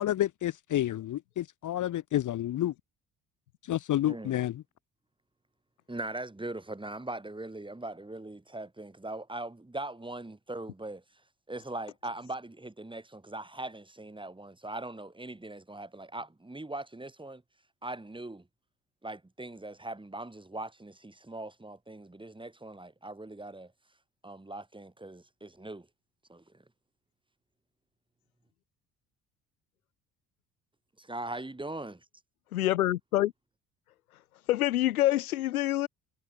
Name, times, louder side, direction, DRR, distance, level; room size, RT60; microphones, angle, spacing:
voice 1, 0.0-2.7 3.7-4.6, left 13 dB, 45° left, 0.9 m, -29 dB
voice 2, 4.0-4.4 5.9-11.0 11.5-17.4 17.8-18.5 19.0-23.7 24.2-25.9 26.3-26.6 31.0-32.0, right 2 dB, 10° right, 3.9 m, -40 dB
voice 3, 32.5-33.3 34.5-35.9, left 14 dB, 90° left, 0.7 m, -26 dB
hypercardioid pair, 55°, 42 cm